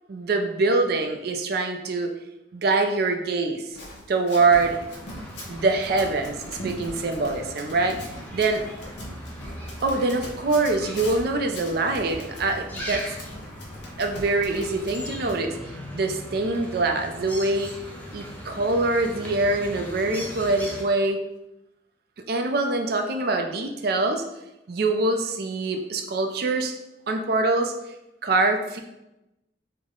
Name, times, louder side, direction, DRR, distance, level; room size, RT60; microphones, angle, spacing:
voice 1, 0.1-2.1 2.5-3.8 4.1-4.8 5.5-8.0 8.3-8.6 9.8-13.2 14.0-17.7 18.1-21.2 22.3-24.2 24.7-26.7 27.1-27.7 28.2-28.8, right 3 dB, 55° right, 5 dB, 0.4 m, -24 dB
Run, 3.7-15.4, left 1 dB, 65° left, 0.8 m, -41 dB
sound 1, 4.4-20.8, equal, 10° left, 0.5 m, -39 dB
3.5 x 2.1 x 3.6 m, 0.91 s
head